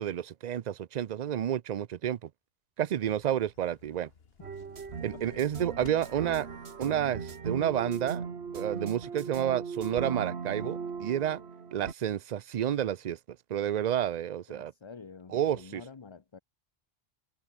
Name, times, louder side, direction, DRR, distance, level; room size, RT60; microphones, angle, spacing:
voice 1, 0.0-2.3 2.8-4.1 5.0-6.5 6.8-8.2 8.5-11.4 11.7-13.2 13.5-14.7 15.3-15.8, right 10 dB, 50° right, 0.6 m, -30 dB
sound 1, 3.0-6.4, left 6 dB, 70° left, 1.5 m, -54 dB
sound 2, 4.4-11.9, right 5 dB, 90° right, 1.7 m, -38 dB
voice 2, 5.1-5.5 14.5-16.4, left 5 dB, 30° left, 0.7 m, -48 dB
omnidirectional pair, 1.1 m